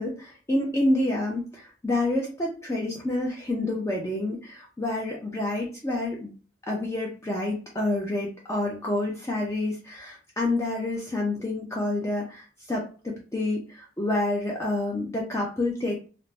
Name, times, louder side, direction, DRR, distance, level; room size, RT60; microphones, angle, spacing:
voice 1, 0.0-6.3 6.7-16.0, left 2 dB, 15° left, -2 dB, 0.4 m, -28 dB
2.5 x 2.0 x 3.3 m, 0.37 s
head